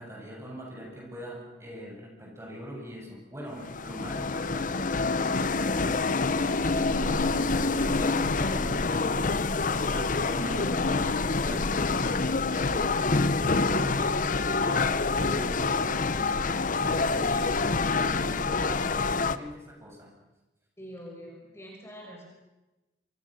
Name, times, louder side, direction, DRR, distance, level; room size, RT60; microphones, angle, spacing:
voice 1, 0.0-5.2 5.6-9.3 9.9-13.0 13.5-16.1 16.7-17.6 17.9-20.1, equal, 15° right, -1 dB, 7.8 m, -41 dB
sound 1, 3.6-19.4, left 3 dB, 45° left, 0.9 m, -26 dB
voice 2, 20.8-22.2, equal, 15° left, -1 dB, 5.8 m, -45 dB
27.5 x 25.5 x 6.5 m, 1.0 s
head